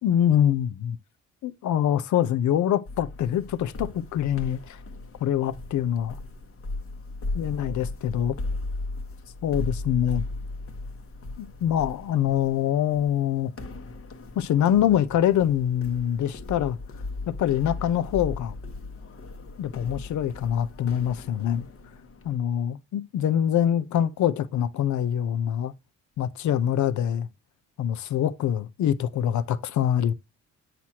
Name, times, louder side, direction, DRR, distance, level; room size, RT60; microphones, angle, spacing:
voice 1, 0.0-1.0 1.4-4.8 5.2-6.2 7.3-8.4 9.4-10.2 11.4-13.5 14.3-16.8 17.3-18.6 19.6-21.7 22.2-25.7 26.2-27.3 27.8-30.1, left 10 dB, 70° left, 0.8 m, -24 dB
sound 1, 2.9-22.4, left 2 dB, 45° left, 1.3 m, -37 dB
8.0 x 6.0 x 2.9 m
cardioid pair, 90°, 30 cm